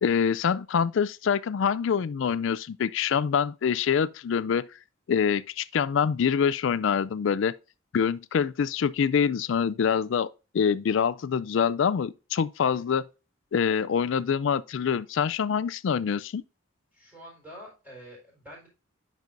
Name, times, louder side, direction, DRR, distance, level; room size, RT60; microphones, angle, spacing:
voice 1, 0.0-4.7 5.1-7.5 7.9-10.3 10.5-13.1 13.5-16.4, left 7 dB, 60° left, 0.3 m, -25 dB
voice 2, 16.9-18.7, equal, 10° right, 4.1 m, -47 dB
10.5 x 5.4 x 2.5 m
head